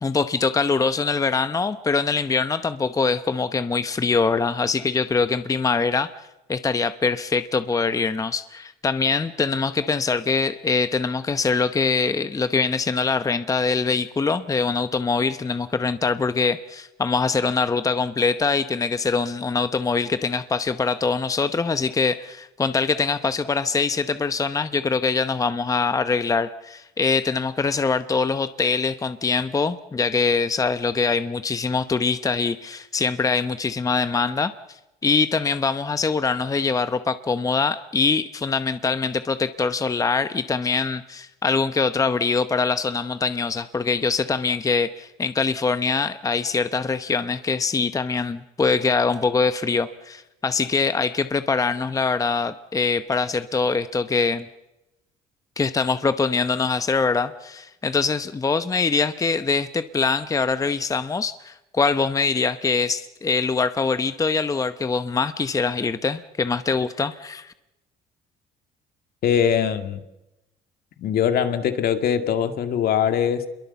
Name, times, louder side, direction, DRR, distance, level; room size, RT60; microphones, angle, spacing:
voice 1, 0.0-6.2 6.5-34.8 35.0-54.5 55.6-67.5, left 4 dB, 20° left, 11 dB, 0.9 m, -23 dB
voice 2, 69.2-70.0 71.0-73.5, left 8 dB, 65° left, 8 dB, 2.1 m, -22 dB
28.0 x 22.5 x 7.1 m, 0.95 s
cardioid pair, 110°, 17 cm